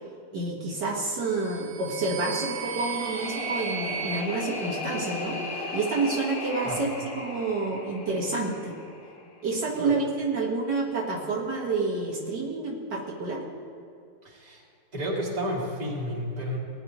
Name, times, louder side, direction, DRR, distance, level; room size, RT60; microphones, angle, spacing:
voice 1, 0.3-5.4 5.7-6.9 7.2-8.7 9.4-13.4, right 3 dB, 65° right, -5 dB, 2.2 m, -29 dB
sound 1, 1.2-5.5, right 8 dB, 85° right, 1.4 m, -36 dB
sound 2, 2.4-9.4, left 3 dB, 80° left, 2.1 m, -36 dB
voice 2, 14.2-14.6 14.9-16.6, equal, 20° right, -4 dB, 2.0 m, -31 dB
18.5 x 9.9 x 3.1 m, 2.4 s
omnidirectional pair, 2.0 m